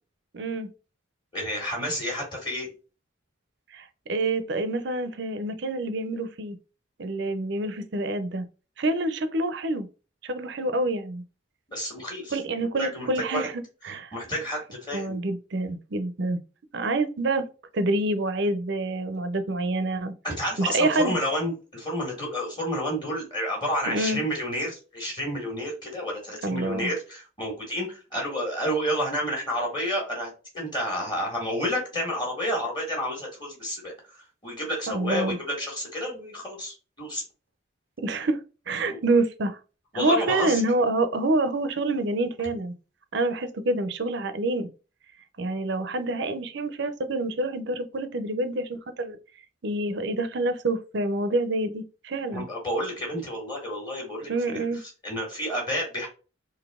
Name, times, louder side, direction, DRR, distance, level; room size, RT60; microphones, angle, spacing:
voice 1, 0.3-0.7 3.7-6.6 7.0-8.5 8.8-9.9 10.2-11.2 12.3-14.1 14.9-16.4 16.7-17.5 17.7-20.1 20.6-21.1 23.9-24.2 26.4-26.9 34.9-35.4 38.0-38.4 38.7-39.6 39.9-42.7 43.1-44.7 45.4-49.2 49.6-52.5 54.3-54.8, right 2 dB, 60° right, 0.6 m, -27 dB
voice 2, 1.3-2.7 11.7-12.4 12.8-13.5 14.1-15.2 20.2-37.2 38.9-39.0 39.9-40.6 52.3-56.1, equal, 20° left, 1.6 m, -30 dB
3.9 x 2.7 x 3.6 m
head